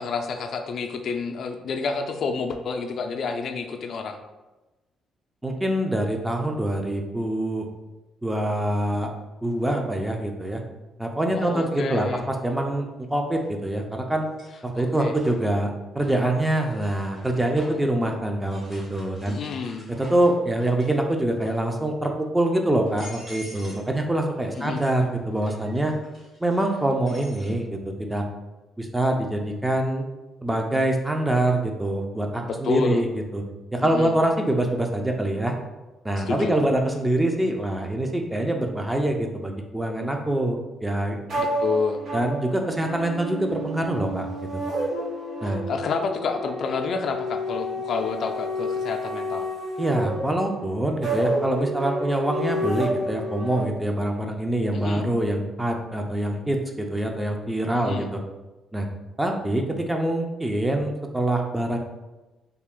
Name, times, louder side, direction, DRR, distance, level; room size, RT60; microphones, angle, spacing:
voice 1, 0.0-4.2 11.3-12.2 14.7-15.1 19.3-19.9 24.6-24.8 32.5-33.0 33.8-34.1 36.2-36.6 41.4-42.0 45.4-49.5 54.7-55.1 57.7-58.1, left 5 dB, 60° left, 5 dB, 0.3 m, -29 dB
voice 2, 5.4-7.7 8.2-9.1 9.4-10.6 11.0-12.9 13.1-14.3 14.6-15.7 15.9-19.3 19.9-25.9 26.4-28.2 28.8-30.1 30.4-33.1 33.3-33.4 33.7-35.5 36.0-41.2 42.1-44.3 44.5-44.6 45.4-45.6 49.8-58.2 58.7-58.9 59.2-61.8, right 1 dB, 10° right, 2 dB, 0.5 m, -25 dB
sound 1, 11.5-11.6 13.3-13.8 14.2-17.9 18.4-21.0 21.3-21.8 22.4-22.5 22.8-23.9 24.2-27.5, equal, 40° right, 1.4 m, -47 dB
sound 2, 41.3-53.6, equal, 65° right, 1.0 m, -30 dB
3.3 x 2.4 x 3.6 m, 1.1 s
cardioid pair, 90°, 0 cm